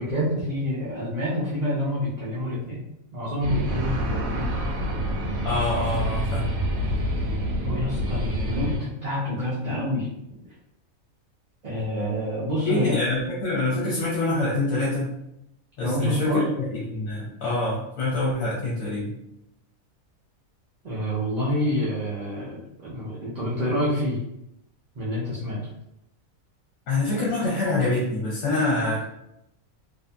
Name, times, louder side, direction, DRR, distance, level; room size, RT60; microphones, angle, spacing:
voice 1, 0.0-2.8 3.1-4.4 7.6-10.1 11.6-13.1 15.8-16.4 20.8-24.2 24.9-25.6, left 1 dB, 55° right, -8 dB, 0.4 m, -27 dB
sound 1, 3.4-8.8, equal, 75° right, 0.9 m, -27 dB
voice 2, 5.4-6.5 12.6-15.1 15.8-16.4 16.7-19.1 26.9-29.0, left 2 dB, 75° left, -8 dB, 1.2 m, -25 dB
2.6 x 2.5 x 2.2 m, 0.80 s
omnidirectional pair, 1.5 m